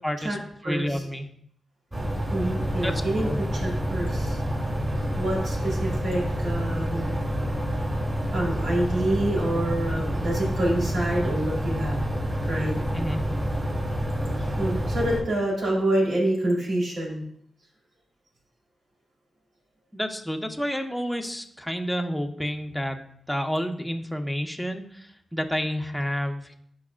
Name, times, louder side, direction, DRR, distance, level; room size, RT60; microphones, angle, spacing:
voice 1, 0.0-0.4 0.6-1.3 2.8-3.4 12.9-13.3 19.9-23.0 23.3-26.5, equal, 5° left, 4 dB, 1.0 m, -30 dB
voice 2, 0.6-1.0 2.3-3.3 3.6-4.4 5.2-7.2 8.3-12.0 12.5-12.8 14.6-17.2, right 1 dB, 80° right, -4 dB, 3.7 m, -27 dB
sound 1, 1.9-15.2, equal, 25° right, 3.9 m, -28 dB
15.5 x 5.5 x 2.5 m, 0.67 s
cardioid pair, 80°, 0 cm